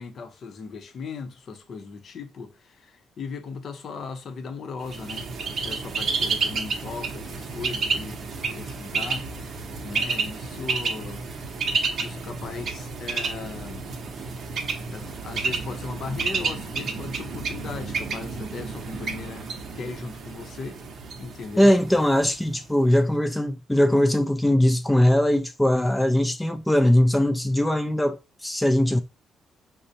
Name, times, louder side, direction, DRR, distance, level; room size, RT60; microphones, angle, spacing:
voice 1, 0.0-5.3 5.6-9.3 9.8-11.3 12.0-13.9 14.9-19.5 19.7-20.8 21.2-21.7, left 4 dB, 55° left, 0.6 m, -37 dB
Bird, 4.8-22.6, right 4 dB, 55° right, 0.7 m, -31 dB
voice 2, 21.6-29.0, left 1 dB, 10° left, 0.3 m, -20 dB
5.0 x 2.1 x 2.7 m
cardioid pair, 90°, 0 cm